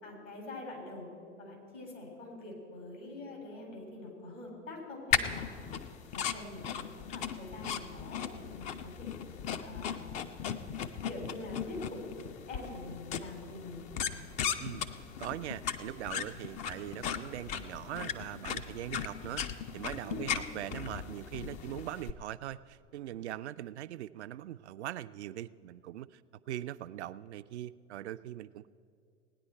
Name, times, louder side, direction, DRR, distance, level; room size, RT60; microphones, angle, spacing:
voice 1, 0.0-1.1 1.4-5.7 6.1-6.8 7.1-9.1 9.6-10.3 11.1-12.0 12.5-13.8 20.0-20.3, left 2 dB, 80° left, 0 dB, 3.8 m, -45 dB
sound 1, 5.1-22.1, left 8 dB, 20° left, 0.4 m, -37 dB
voice 2, 14.6-26.2 26.5-28.7, right 13 dB, 65° right, 13 dB, 0.5 m, -41 dB
17.5 x 9.8 x 4.4 m, 2.3 s
figure-of-eight pair, 90°, 37 cm